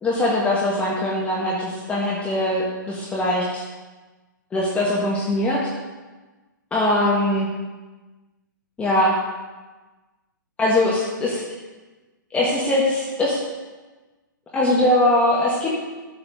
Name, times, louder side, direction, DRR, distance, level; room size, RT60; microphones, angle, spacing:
voice 1, 0.0-3.6 4.5-5.7 6.7-7.5 8.8-9.1 10.6-11.4 12.3-13.4 14.5-15.8, left 1 dB, 10° left, -5 dB, 1.7 m, -21 dB
13.0 x 7.7 x 3.8 m, 1.2 s
figure-of-eight pair, 120°, 11 cm